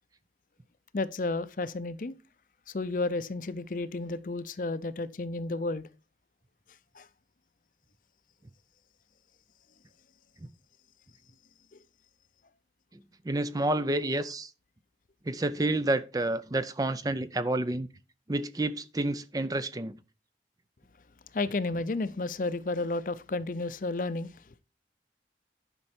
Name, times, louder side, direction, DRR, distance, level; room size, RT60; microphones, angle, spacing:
voice 1, 0.9-2.2 2.7-5.9 6.9-7.1 21.3-24.3, left 3 dB, 50° left, 0.5 m, -32 dB
voice 2, 13.3-14.5 15.3-17.9 18.3-19.9, right 2 dB, 20° right, 0.5 m, -29 dB
11.0 x 5.4 x 4.4 m
head